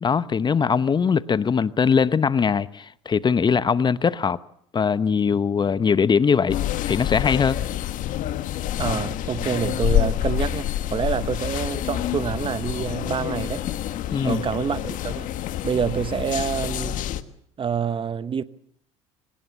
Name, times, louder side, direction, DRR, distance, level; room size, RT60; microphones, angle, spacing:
voice 1, 0.0-4.4 4.7-6.6 6.8-7.6 14.1-14.4, left 6 dB, 30° left, 0.9 m, -21 dB
sound 1, 6.5-17.2, left 12 dB, 55° left, 1.4 m, -27 dB
voice 2, 8.8-13.6 14.2-15.3 15.6-17.0 17.6-18.4, right 7 dB, 35° right, 1.1 m, -27 dB
25.0 x 19.0 x 7.0 m
hypercardioid pair, 75°, 16 cm